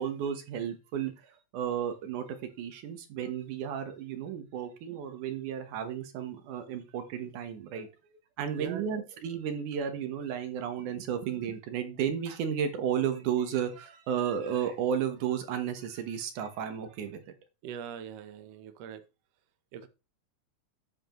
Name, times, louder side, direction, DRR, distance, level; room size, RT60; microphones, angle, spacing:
voice 1, 0.0-7.9 8.4-17.3, right 8 dB, 90° right, 2.7 m, -33 dB
voice 2, 17.6-19.0 19.7-19.9, right 8 dB, 65° right, 1.9 m, -41 dB
9.5 x 7.9 x 3.1 m
omnidirectional pair, 3.5 m